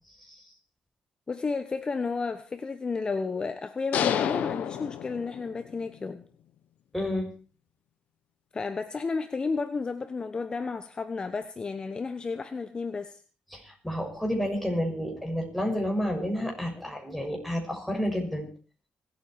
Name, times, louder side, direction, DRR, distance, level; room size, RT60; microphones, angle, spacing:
voice 1, 1.3-6.2 8.5-13.2, left 4 dB, 35° left, 9 dB, 1.2 m, -32 dB
sound 1, 3.9-5.8, left 10 dB, 75° left, 1.3 m, -29 dB
voice 2, 6.9-7.3 13.5-18.5, equal, ahead, 0 dB, 6.7 m, -30 dB
26.0 x 9.1 x 4.8 m, 0.38 s
cardioid pair, 80°, 3 cm